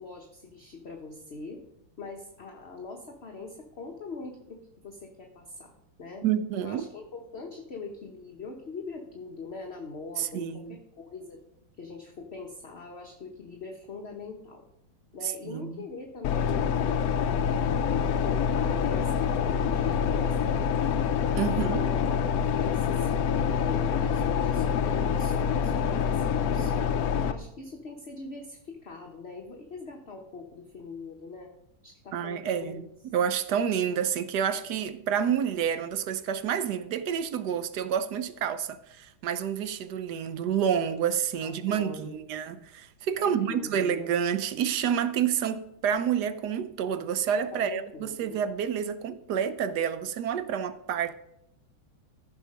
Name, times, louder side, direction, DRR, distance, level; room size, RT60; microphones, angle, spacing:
voice 1, 0.0-1.6 2.0-5.7 6.0-6.2 6.6-11.4 11.8-14.7 15.1-17.6 18.1-21.1 21.5-26.8 27.2-31.5 31.8-32.8 41.4-42.2 43.2-43.9 47.5-48.4, left 4 dB, 40° left, 1.0 m, -42 dB
voice 2, 6.2-6.9 10.2-10.8 15.2-15.7 21.4-21.8 32.1-51.1, right 8 dB, 70° right, 1.0 m, -29 dB
sound 1, 16.2-27.3, left 7 dB, 85° left, 0.8 m, -26 dB
14.5 x 6.3 x 5.2 m
omnidirectional pair, 2.3 m